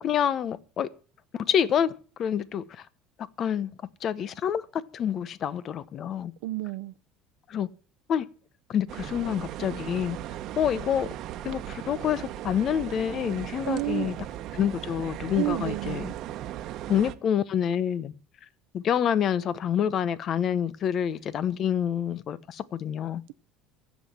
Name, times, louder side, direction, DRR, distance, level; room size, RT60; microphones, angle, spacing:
voice 1, 0.0-0.9 1.3-2.9 3.4-3.7 4.0-6.3 7.5-7.7 8.1-8.3 8.7-10.2 10.6-11.1 11.4-14.2 14.5-16.1 16.9-18.1 18.7-23.2, left 9 dB, 50° left, 0.9 m, -27 dB
voice 2, 6.4-6.9 13.6-14.1 15.3-16.2, right 19 dB, 80° right, 0.7 m, -30 dB
sound 1, 8.9-17.1, right 12 dB, 60° right, 1.1 m, -37 dB
14.5 x 7.5 x 7.5 m
supercardioid pair, 95°, 0 cm